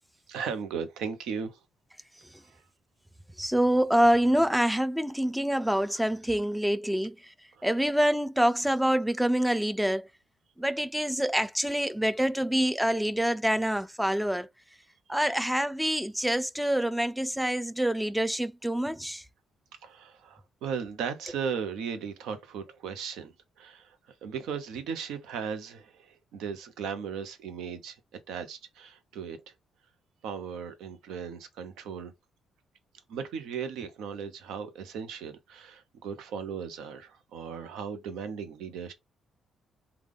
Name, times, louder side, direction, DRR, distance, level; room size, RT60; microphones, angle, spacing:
voice 1, 0.3-1.6 2.5-2.6 7.6-7.7 19.8-23.3 23.6-24.0 24.2-28.0 28.3-29.5 30.2-32.1 33.1-38.9, right 6 dB, 85° right, 0.7 m, -37 dB
voice 2, 3.4-7.2 7.6-10.1 10.6-14.5 15.1-19.2, equal, 5° right, 0.4 m, -26 dB
3.6 x 2.3 x 3.4 m
cardioid pair, 90°, 0 cm